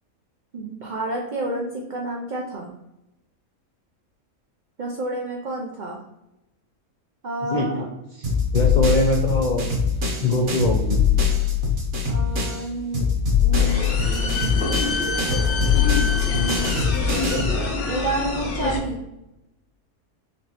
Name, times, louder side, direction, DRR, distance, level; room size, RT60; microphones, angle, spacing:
voice 1, 0.5-2.7 4.8-6.0 7.2-7.9 8.6-8.9 12.1-13.1 13.4-14.9 16.3-19.0, right 2 dB, 85° right, -1 dB, 0.4 m, -30 dB
voice 2, 7.5-7.8 8.1-8.2 8.5-9.7 10.2-11.0, left 1 dB, 90° left, 0 dB, 0.4 m, -22 dB
sound 1, 8.2-12.7 12.9-17.6, left 6 dB, 45° right, 0.8 m, -22 dB
sound 2, 13.5-18.8, left 3 dB, 50° left, 0.8 m, -26 dB
4.4 x 3.0 x 2.9 m, 0.93 s
omnidirectional pair, 1.5 m